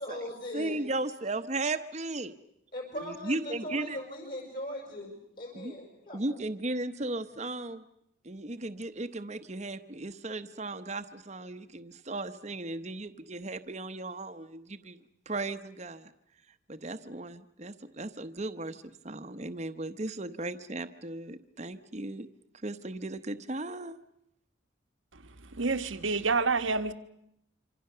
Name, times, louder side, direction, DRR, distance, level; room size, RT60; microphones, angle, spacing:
voice 1, 0.0-0.8 2.7-6.4, left 1 dB, 50° left, 6.0 m, -39 dB
voice 2, 0.5-2.3 3.0-4.0 5.5-5.7 6.1-7.8 8.2-15.0 15.3-16.1 16.7-22.3 22.6-24.0, right 2 dB, 35° right, 0.9 m, -36 dB
voice 3, 25.6-26.9, right 4 dB, 80° right, 1.4 m, -27 dB
26.5 x 26.0 x 6.8 m
head